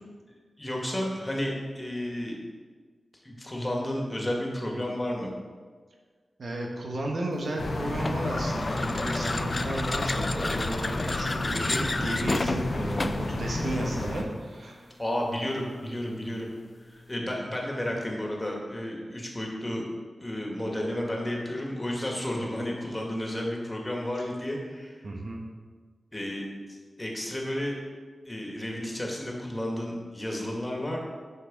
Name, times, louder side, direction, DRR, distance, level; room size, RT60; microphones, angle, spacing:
voice 1, 0.6-2.4 3.2-5.3 15.0-16.5 16.8-19.8 20.2-25.0 26.1-27.8 28.2-31.0, left 1 dB, 20° left, -1 dB, 2.0 m, -32 dB
voice 2, 6.4-14.9 24.2-24.3 25.0-25.4, right 1 dB, 70° right, 0 dB, 1.3 m, -33 dB
sound 1, 7.6-14.2, left 2 dB, 65° left, 0.9 m, -31 dB
sound 2, 8.0-13.4, left 2 dB, 40° left, 0.3 m, -31 dB
6.6 x 5.5 x 5.4 m, 1.5 s
cardioid pair, 45°, 0 cm